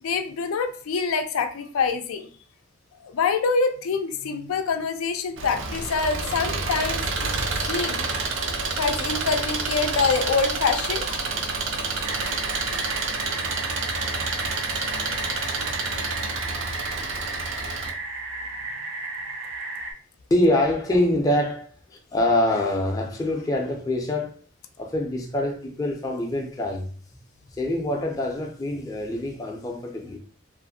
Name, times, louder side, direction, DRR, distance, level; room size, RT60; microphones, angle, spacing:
voice 1, 0.0-2.3 3.0-7.3 7.7-8.0 8.8-11.2, left 5 dB, 90° left, 0.4 m, -25 dB
Engine, 5.4-17.9, right 3 dB, 60° right, 0.5 m, -28 dB
sound 1, 12.0-19.9, right 2 dB, 80° right, 0.8 m, -34 dB
voice 2, 20.3-24.3 24.8-26.9 27.6-30.2, left 1 dB, 15° left, 0.4 m, -25 dB
2.5 x 2.4 x 2.6 m
head